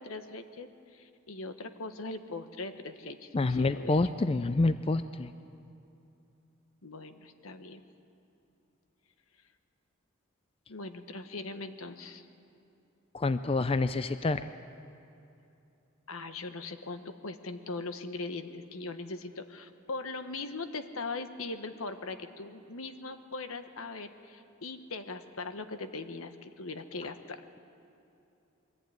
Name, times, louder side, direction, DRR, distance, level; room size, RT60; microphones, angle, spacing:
voice 1, 0.0-4.0 6.8-7.8 10.7-12.2 16.1-27.4, left 3 dB, 80° left, 9 dB, 1.2 m, -40 dB
voice 2, 3.3-5.3 13.1-14.5, left 3 dB, 25° left, 12 dB, 0.4 m, -27 dB
22.5 x 14.5 x 9.3 m, 2.8 s
head